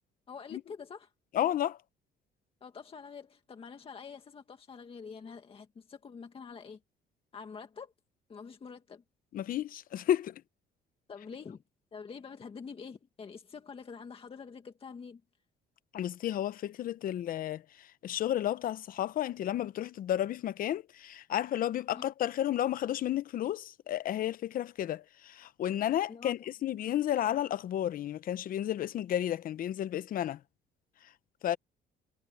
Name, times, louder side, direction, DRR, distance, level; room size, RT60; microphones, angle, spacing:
voice 1, 0.3-1.1 2.6-6.8 7.3-7.9 8.3-9.0 11.1-11.6 11.9-15.2 21.9-22.1 26.1-26.3, left 5 dB, 35° left, 2.0 m, -46 dB
voice 2, 1.3-1.8 9.3-10.4 15.9-30.4 31.4-31.6, left 11 dB, 55° left, 0.9 m, -32 dB
cardioid pair, 110°, 17 cm